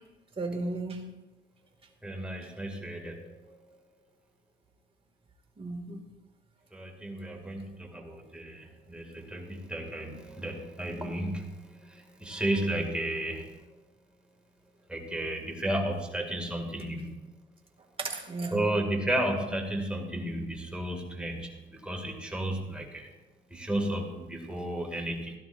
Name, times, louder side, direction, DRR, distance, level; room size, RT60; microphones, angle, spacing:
voice 1, 0.4-1.1 5.6-6.0 12.3-12.4 18.0-18.7, right 2 dB, 30° right, 0 dB, 2.3 m, -35 dB
voice 2, 2.0-3.8 6.7-13.5 14.9-17.1 18.5-23.1 23.5-25.3, right 1 dB, 5° right, 1 dB, 2.4 m, -33 dB
17.0 x 12.0 x 2.7 m, 1.1 s
cardioid pair, 90°, 20 cm